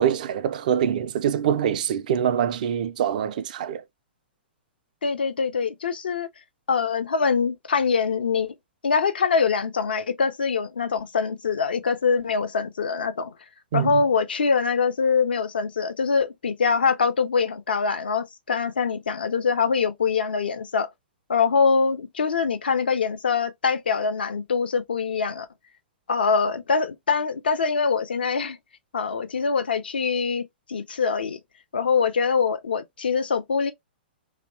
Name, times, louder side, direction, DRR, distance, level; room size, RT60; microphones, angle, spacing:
voice 1, 0.0-3.8 13.7-14.0, right 9 dB, 50° right, 0.3 m, -24 dB
voice 2, 5.0-6.3 6.7-8.5 8.8-13.3 13.7-20.9 21.3-25.5 26.1-28.6 28.9-30.4 30.7-31.4 31.7-33.7, left 5 dB, 65° left, 0.4 m, -24 dB
2.8 x 2.1 x 2.5 m
figure-of-eight pair, 110°, 6 cm